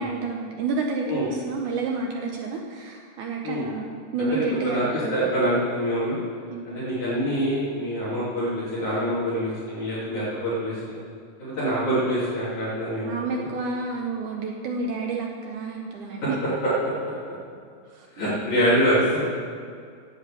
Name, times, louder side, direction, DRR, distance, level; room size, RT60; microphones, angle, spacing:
voice 1, 0.0-5.1 6.5-6.8 13.1-16.4 17.9-18.2, right 3 dB, 75° right, 1 dB, 1.8 m, -30 dB
voice 2, 4.2-6.2 6.6-11.0 11.4-13.5 16.2-16.3 16.6-16.7 18.2-19.2, equal, 50° left, -10 dB, 3.9 m, -25 dB
9.7 x 8.4 x 8.4 m, 2.2 s
omnidirectional pair, 4.5 m